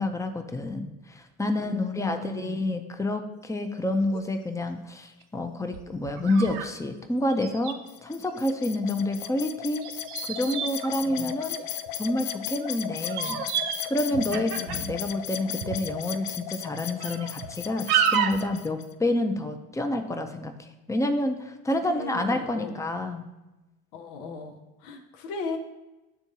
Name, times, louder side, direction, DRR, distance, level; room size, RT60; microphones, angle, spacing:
voice 1, 0.0-9.9 10.2-11.6 11.9-13.4 13.9-23.3, left 1 dB, 5° left, 6 dB, 0.6 m, -28 dB
voice 2, 1.5-2.6 11.0-11.3 14.1-14.9 21.7-22.8 23.9-25.6, left 5 dB, 80° left, 5 dB, 0.9 m, -37 dB
sound 1, 3.4-3.5 4.0-4.2 4.8-4.9 5.7-6.7 7.0-7.1 7.3-7.7 9.8-11.9 12.6-12.8 13.0-13.8 14.1-15.0 15.6-15.8 16.3-16.4 17.0-17.5 17.9-18.5, right 9 dB, 85° right, 0.6 m, -30 dB
sound 2, 7.9-18.9, left 11 dB, 55° left, 0.5 m, -36 dB
9.9 x 3.5 x 2.8 m, 1.0 s
hypercardioid pair, 60°, 44 cm